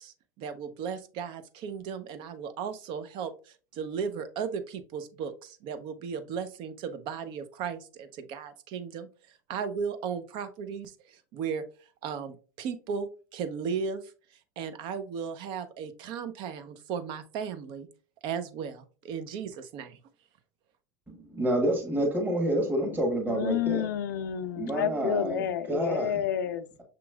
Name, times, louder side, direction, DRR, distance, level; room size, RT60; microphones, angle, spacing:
voice 1, 0.0-9.1 9.5-11.6 12.0-14.1 14.6-17.9 18.2-20.0, right 6 dB, 55° right, 10 dB, 0.6 m, -36 dB
voice 2, 21.1-23.8 24.6-25.4 25.7-26.1, right 1 dB, 20° right, 1 dB, 1.4 m, -28 dB
voice 3, 23.3-26.6, left 9 dB, 80° left, 13 dB, 0.4 m, -30 dB
6.1 x 3.0 x 2.3 m, 0.38 s
hypercardioid pair, 90°, 10 cm